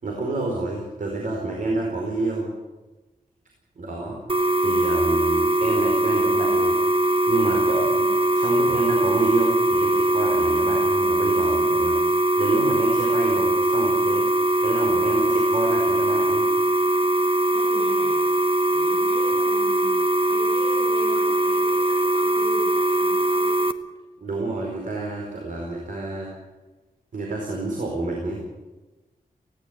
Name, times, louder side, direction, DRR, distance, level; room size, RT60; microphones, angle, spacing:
voice 1, 0.0-2.5 3.8-4.2 4.6-6.8 7.3-8.1 8.3-16.5 24.2-26.3 27.1-28.4, right 2 dB, 65° right, -1 dB, 4.7 m, -28 dB
sound 1, 4.3-23.7, right 1 dB, 40° right, 1.0 m, -21 dB
voice 2, 17.5-18.3 18.7-23.5, left 1 dB, 35° left, -4 dB, 6.6 m, -39 dB
19.0 x 17.0 x 8.3 m, 1.1 s
wide cardioid pair, 175°, 15 cm